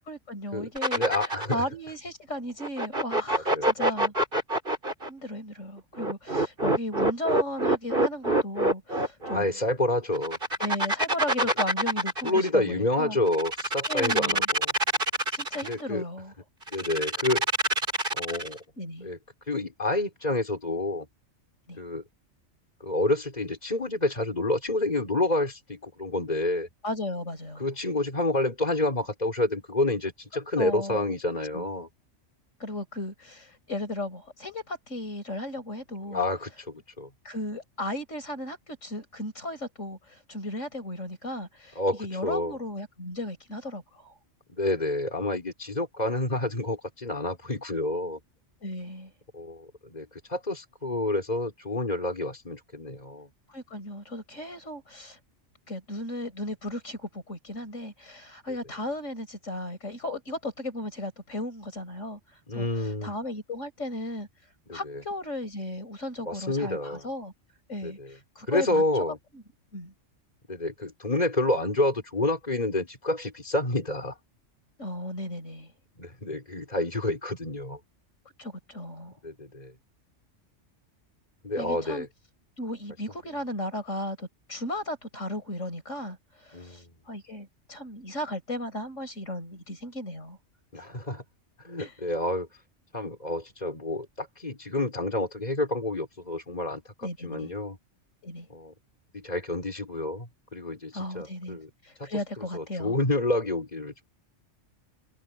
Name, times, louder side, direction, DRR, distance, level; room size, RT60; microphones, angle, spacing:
voice 1, 0.1-1.0 1.5-4.1 5.0-9.5 10.6-13.2 13.9-14.5 15.3-16.3 18.8-19.1 21.7-21.8 26.8-27.7 30.6-31.1 31.5-31.6 32.6-36.3 37.2-44.2 48.6-49.1 53.5-55.2 55.7-64.3 64.7-67.3 67.7-68.8 69.3-69.4 69.7-69.9 74.8-75.7 78.4-79.2 81.6-82.1 82.6-90.4 91.8-91.9 97.0-97.5 98.2-98.5 100.9-103.0, left 1 dB, 85° left, 6.0 m, -35 dB
sound 1, 0.7-1.6 2.6-5.1 6.0-9.4 10.1-12.5 13.3-15.7 16.7-18.6, right 1 dB, 45° right, 4.6 m, -26 dB
voice 2, 0.9-1.6 3.3-3.9 9.2-10.4 12.2-14.7 15.6-16.0 16.7-17.4 18.1-18.6 19.0-19.2 19.5-21.1 21.8-22.0 22.8-26.7 27.6-31.9 36.1-37.1 41.8-42.6 44.5-48.2 49.3-53.3 62.5-63.1 64.7-65.0 66.2-67.1 67.8-68.1 68.5-69.2 70.5-74.1 76.0-77.8 79.2-79.7 81.4-82.1 86.5-86.9 90.7-91.2 91.6-92.5 92.9-97.8 98.5-98.7 99.1-101.7 102.0-102.1 102.4-104.0, left 2 dB, 35° left, 4.7 m, -29 dB
omnidirectional pair, 1.3 m